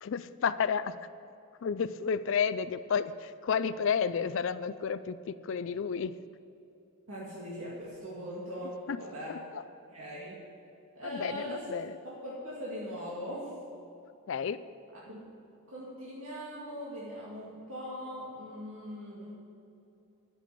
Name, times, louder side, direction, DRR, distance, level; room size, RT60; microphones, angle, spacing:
voice 1, 0.0-1.0 1.6-6.1 8.9-9.0 9.3-9.6 11.0-12.0 14.3-14.6, left 6 dB, 65° left, 14 dB, 0.4 m, -31 dB
voice 2, 7.1-9.4 9.9-10.4 11.0-11.6 12.0-13.5 15.1-15.2 15.7-19.3, equal, 75° right, -7 dB, 2.2 m, -40 dB
11.0 x 6.9 x 7.6 m, 2.8 s
head